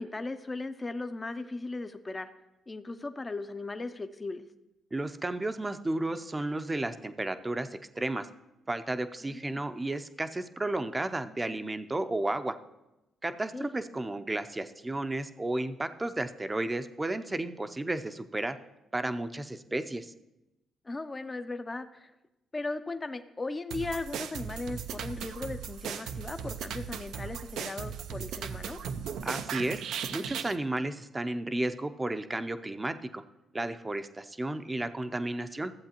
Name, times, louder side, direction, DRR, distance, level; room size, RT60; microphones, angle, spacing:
voice 1, 0.0-2.3 2.7-4.4 9.2-9.7 13.5-13.7 20.8-22.1 22.5-28.8, left 3 dB, 25° left, 9 dB, 0.5 m, -37 dB
voice 2, 4.9-7.7 8.0-8.3 8.7-12.6 13.2-18.6 18.9-20.1 29.2-29.8 30.1-33.2 33.5-35.7, right 2 dB, 20° right, 10 dB, 0.5 m, -33 dB
sound 1, 23.7-30.6, right 7 dB, 80° right, 0.4 m, -37 dB
14.5 x 7.7 x 2.9 m, 0.95 s
cardioid pair, 80°, 0 cm